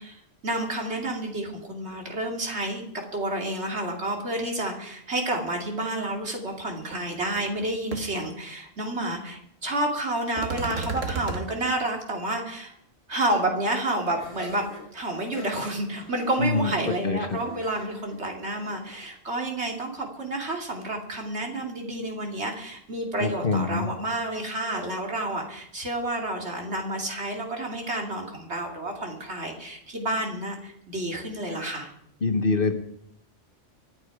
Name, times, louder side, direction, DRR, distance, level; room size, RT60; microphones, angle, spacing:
voice 1, 0.0-2.9 3.1-12.7 13.1-14.6 14.9-31.9, right 1 dB, 60° right, 1 dB, 3.0 m, -30 dB
sound 1, 6.9-7.0 7.4-7.6 7.9-8.0 10.4-11.4, right 4 dB, 90° right, 2.0 m, -31 dB
Laughter, 14.1-19.1, equal, 25° left, 5.9 m, -45 dB
voice 2, 16.4-17.4 23.2-23.9 32.2-32.7, left 3 dB, 45° left, 7 dB, 1.4 m, -25 dB
25.0 x 9.1 x 4.9 m, 0.72 s
omnidirectional pair, 1.3 m